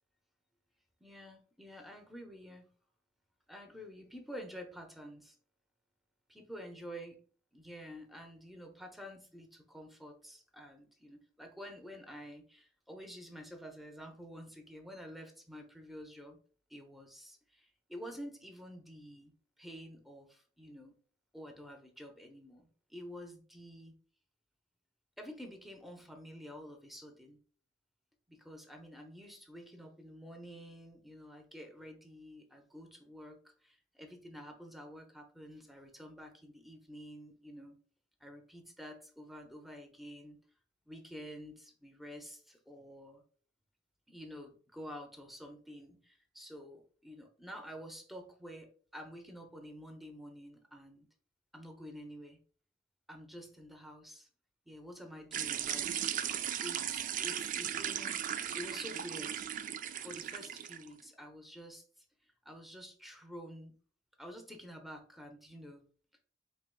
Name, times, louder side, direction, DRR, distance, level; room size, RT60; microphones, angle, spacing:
voice 1, 1.0-2.7 3.5-5.4 6.3-7.2 7.5-16.4 16.7-19.3 19.6-21.0 21.3-24.0 25.2-27.4 28.3-37.8 38.2-40.4 40.9-43.2 44.1-51.1 51.5-52.4 53.1-54.3 54.7-56.0 56.6-58.3 58.5-59.5 59.9-62.0 62.4-63.8 64.2-65.8, equal, ahead, 4 dB, 0.7 m, -49 dB
sound 1, 55.3-60.9, right 9 dB, 45° right, 0.3 m, -37 dB
4.5 x 3.4 x 2.2 m, 0.42 s
head